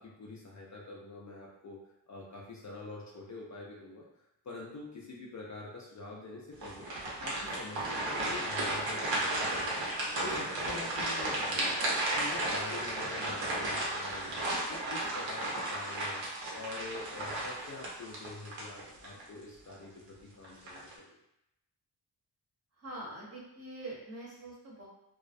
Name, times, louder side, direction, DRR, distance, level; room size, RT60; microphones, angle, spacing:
voice 1, 0.0-1.8 2.1-4.1 4.4-6.9 7.2-9.7 10.2-11.8 12.1-14.4 14.7-16.2 16.5-21.1, left 3 dB, 40° left, -4 dB, 0.4 m, -45 dB
sound 1, 6.6-19.2 19.7-19.8 20.4-20.9, right 1 dB, 85° right, 0.8 m, -34 dB
voice 2, 22.8-24.9, right 1 dB, 35° right, -5 dB, 0.8 m, -44 dB
2.3 x 2.1 x 2.5 m, 0.85 s
cardioid pair, 95°, 45 cm